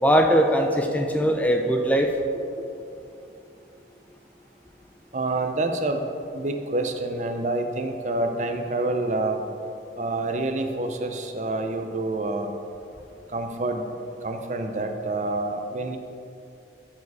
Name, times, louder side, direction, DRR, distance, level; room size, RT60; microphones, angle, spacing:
voice 1, 0.0-2.1, equal, 10° left, 3 dB, 0.4 m, -20 dB
voice 2, 5.1-6.0 6.3-9.4 10.0-12.5 13.3-13.9 14.2-16.0, right 2 dB, 40° right, 5 dB, 0.6 m, -27 dB
12.5 x 4.8 x 4.8 m, 2.6 s
head